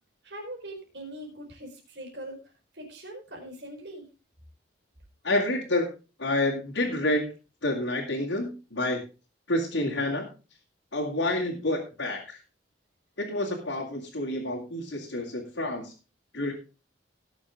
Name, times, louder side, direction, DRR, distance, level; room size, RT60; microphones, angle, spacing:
voice 1, 0.2-2.4 2.7-4.1, right 1 dB, 60° right, 0 dB, 4.6 m, -41 dB
voice 2, 5.2-5.9 6.2-7.3 7.6-9.0 9.5-10.3 10.9-12.4 13.2-15.9 16.3-16.5, left 1 dB, 80° left, -3 dB, 2.7 m, -28 dB
18.0 x 7.3 x 3.6 m, 0.32 s
head